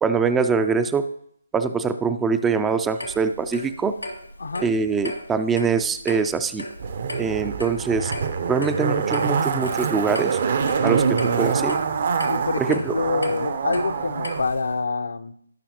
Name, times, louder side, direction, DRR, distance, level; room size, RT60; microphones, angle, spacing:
voice 1, 0.0-1.1 1.5-4.0 4.6-6.6 7.2-8.1 8.5-10.4 10.8-11.8 12.6-12.9, right 5 dB, 10° right, 10 dB, 0.4 m, -23 dB
Clock, 3.0-14.7, left 1 dB, 85° left, 2.1 m, -37 dB
Zipper (clothing), 6.8-14.4 14.7-14.8, right 6 dB, 45° right, 0.7 m, -25 dB
voice 2, 12.3-15.3, left 3 dB, 65° left, 10 dB, 0.7 m, -26 dB
16.0 x 5.6 x 2.9 m, 0.68 s
figure-of-eight pair, 145°, 0 cm